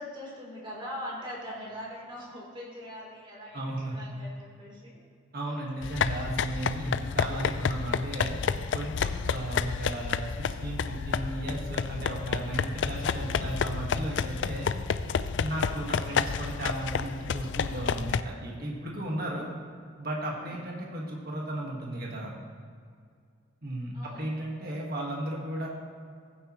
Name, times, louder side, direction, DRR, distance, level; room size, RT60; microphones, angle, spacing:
voice 1, 0.0-5.0 5.5-5.6 20.4-20.5 23.9-24.2, equal, 25° right, -4 dB, 3.3 m, -41 dB
voice 2, 3.5-3.9 5.3-8.4 8.7-14.7 15.4-19.5 20.0-22.3 23.6-25.7, right 1 dB, 50° right, -2 dB, 1.6 m, -35 dB
sound 1, 5.8-18.2, left 6 dB, 60° left, 0.3 m, -30 dB
15.5 x 10.0 x 3.1 m, 2.2 s
head